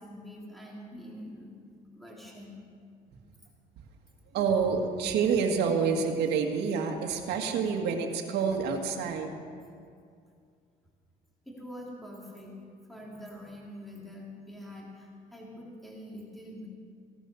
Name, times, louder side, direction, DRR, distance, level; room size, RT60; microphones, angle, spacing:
voice 1, 0.0-1.5 1.9-2.6 11.4-12.5 12.9-16.7, equal, ahead, -3 dB, 3.4 m, -45 dB
voice 2, 4.3-9.3, right 6 dB, 80° right, 2 dB, 1.8 m, -28 dB
17.0 x 11.5 x 6.9 m, 2.3 s
cardioid pair, 110°, 17 cm